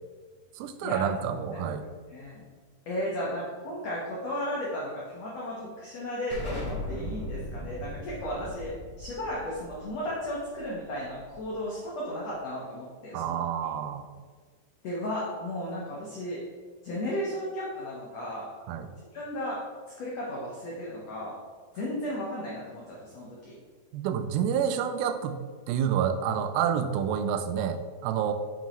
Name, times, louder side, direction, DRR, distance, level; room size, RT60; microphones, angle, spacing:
voice 1, 0.6-1.9 13.1-14.1 18.7-18.9 23.9-25.4 25.7-28.3, right 8 dB, 80° right, 8 dB, 2.2 m, -28 dB
voice 2, 2.1-2.4 2.9-13.7 14.8-16.4 16.8-18.5 19.1-19.6 20.0-21.4 21.7-23.5, equal, 80° left, -5 dB, 1.5 m, -34 dB
Explosion, 6.3-11.7, left 1 dB, 30° left, 1.5 m, -39 dB
7.3 x 5.7 x 3.0 m, 1.5 s
omnidirectional pair, 4.6 m